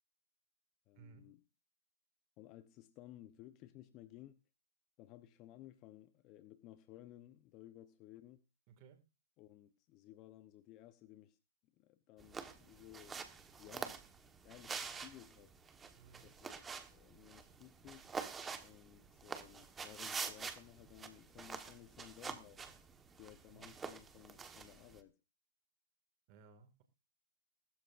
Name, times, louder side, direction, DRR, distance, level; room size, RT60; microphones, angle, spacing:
voice 1, 0.9-1.4 2.4-4.4 5.0-8.4 9.4-11.4 11.8-13.2 13.6-14.0 14.4-15.5 16.2-18.1 18.6-22.6 23.2-25.2, left 14 dB, 30° left, 0.9 m, -57 dB
sound 1, 12.2-25.0, right 5 dB, 10° right, 1.4 m, -47 dB
voice 2, 15.9-16.3 23.5-23.8 26.3-26.8, right 6 dB, 35° right, 2.2 m, -60 dB
19.0 x 13.0 x 2.6 m
hypercardioid pair, 135°, 0 cm